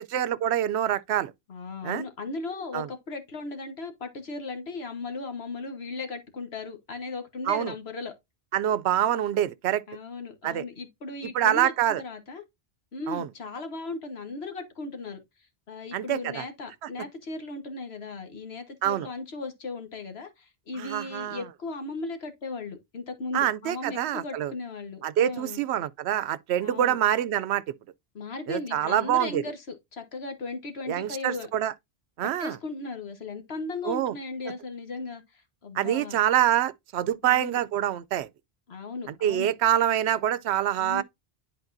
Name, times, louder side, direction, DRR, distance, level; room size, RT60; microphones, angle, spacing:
voice 1, 0.0-1.3 1.8-2.0 2.7-2.9 7.5-7.7 8.5-9.8 10.4-10.6 11.3-12.0 13.1-13.3 15.9-16.4 18.8-19.1 20.8-21.4 23.3-24.5 25.0-27.6 28.5-29.4 30.9-31.7 32.2-32.6 33.8-34.1 35.7-38.3 39.1-41.0, right 11 dB, 80° right, 0.8 m, -25 dB
voice 2, 1.5-8.1 9.9-11.7 12.0-12.4 12.9-15.2 15.7-25.6 26.6-27.0 28.1-31.5 32.2-36.2 37.2-37.6 38.7-39.5 40.8-41.0, left 3 dB, 70° left, 1.5 m, -37 dB
10.5 x 4.2 x 2.6 m
omnidirectional pair, 1.1 m